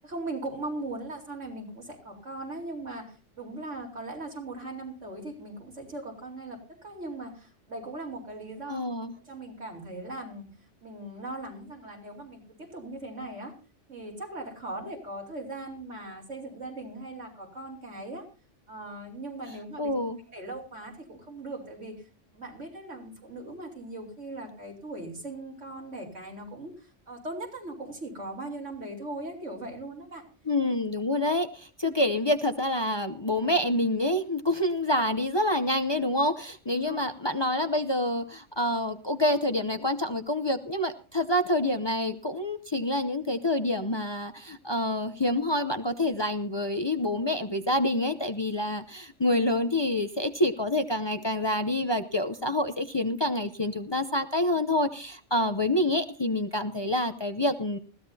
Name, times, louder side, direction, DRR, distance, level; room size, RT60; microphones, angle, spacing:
voice 1, 0.0-8.8 9.2-10.5 10.8-13.5 13.9-18.3 18.7-19.9 20.3-22.1 22.3-30.2 31.9-32.0 36.7-37.0, right 2 dB, 85° right, 0 dB, 4.5 m, -39 dB
voice 2, 8.7-9.1 19.8-20.2 30.5-57.8, left 1 dB, 25° left, 7 dB, 0.7 m, -27 dB
20.5 x 16.0 x 2.8 m, 0.36 s
omnidirectional pair, 1.2 m